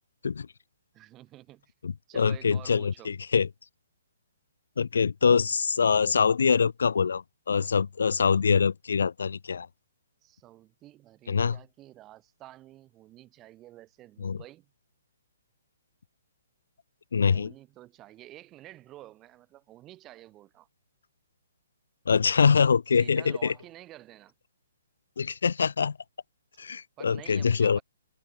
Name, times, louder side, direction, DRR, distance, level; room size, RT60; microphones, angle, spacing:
voice 1, 0.9-1.7 2.1-3.1 10.2-14.7 17.3-20.7 22.9-24.3 27.0-27.8, right 15 dB, 15° right, 4.3 m, -50 dB
voice 2, 1.8-3.5 4.8-9.7 11.3-11.6 14.2-14.4 17.1-17.5 22.1-23.5 25.2-26.0 26.6-27.8, left 6 dB, 80° left, 1.1 m, -24 dB
hypercardioid pair, 170°, 0 cm